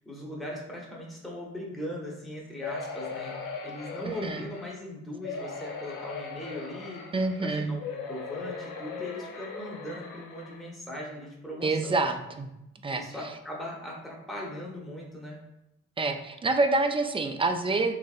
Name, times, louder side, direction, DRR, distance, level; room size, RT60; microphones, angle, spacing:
voice 1, 0.1-7.0 7.4-12.0 12.9-15.4, left 1 dB, ahead, -3 dB, 0.9 m, -39 dB
sound 1, 2.6-4.8 5.2-7.4 7.8-10.7 11.2-11.3 11.6-11.7, left 4 dB, 70° left, 0.6 m, -39 dB
voice 2, 4.1-4.4 7.1-7.7 11.6-12.5 12.8-13.0 16.0-17.9, right 3 dB, 15° right, 6 dB, 0.4 m, -27 dB
2.9 x 2.7 x 2.4 m, 0.89 s
supercardioid pair, 45°, 33 cm